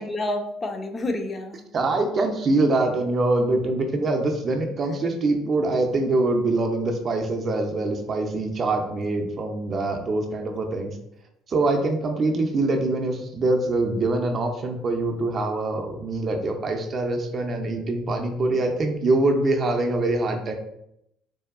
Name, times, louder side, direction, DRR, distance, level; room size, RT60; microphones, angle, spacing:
voice 1, 0.0-1.7, left 1 dB, 35° left, 5 dB, 0.4 m, -29 dB
voice 2, 1.7-11.0 11.5-20.5, right 2 dB, 45° right, 4 dB, 0.4 m, -24 dB
2.6 x 2.2 x 2.4 m, 0.79 s
hypercardioid pair, 65°, 0 cm